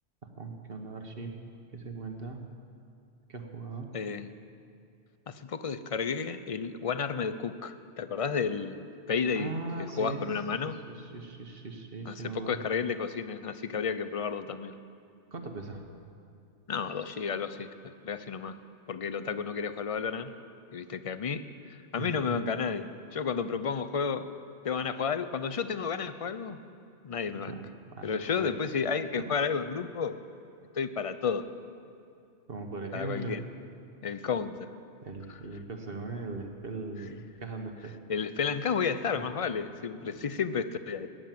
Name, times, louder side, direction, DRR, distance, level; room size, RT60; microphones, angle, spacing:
voice 1, 0.2-1.3 1.7-2.4 3.3-3.9 9.3-10.2 10.6-12.6 15.3-15.8 22.0-22.4 27.5-28.5 29.2-29.3 32.5-33.4 35.0-38.0 39.1-39.2, right 3 dB, 50° right, 4 dB, 1.4 m, -39 dB
voice 2, 3.9-4.3 5.3-10.8 12.1-14.7 16.7-18.6 18.9-20.3 20.7-21.4 21.7-24.3 24.6-26.6 27.0-27.6 28.0-30.2 30.7-31.5 32.9-33.4 34.0-34.7 38.1-41.1, left 6 dB, 45° left, 12 dB, 0.5 m, -32 dB
17.5 x 10.5 x 7.6 m, 2.5 s
omnidirectional pair, 1.2 m